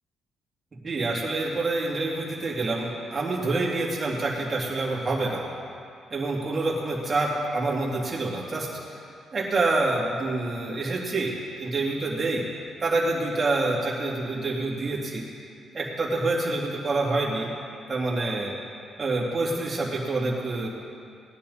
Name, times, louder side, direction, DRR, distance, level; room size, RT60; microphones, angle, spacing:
voice 1, 0.8-5.4 6.1-9.0 9.3-11.3 11.6-12.5 12.8-15.2 15.7-17.5 17.9-18.5 19.0-20.7, right 2 dB, 35° right, -4 dB, 3.0 m, -27 dB
19.0 x 10.5 x 4.3 m, 2.4 s
cardioid pair, 90°, 0 cm